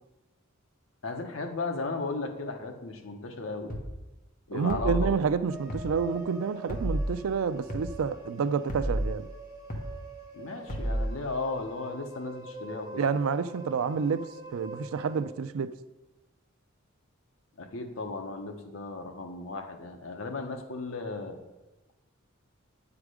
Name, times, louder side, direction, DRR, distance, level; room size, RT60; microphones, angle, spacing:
voice 1, 1.0-3.7 4.5-5.2 10.3-13.0 17.6-21.4, left 3 dB, 70° left, 1.0 m, -35 dB
sound 1, 3.7-3.9 4.7-5.1 5.7-5.9 6.7-7.1 7.7-7.9 8.7-9.1 9.7-9.9 10.7-11.1, equal, 40° left, 1.1 m, -30 dB
voice 2, 4.5-9.3 13.0-15.8, right 6 dB, 90° right, 0.4 m, -29 dB
sound 2, 5.5-15.2, right 2 dB, 15° right, 2.9 m, -44 dB
8.8 x 4.9 x 4.9 m
head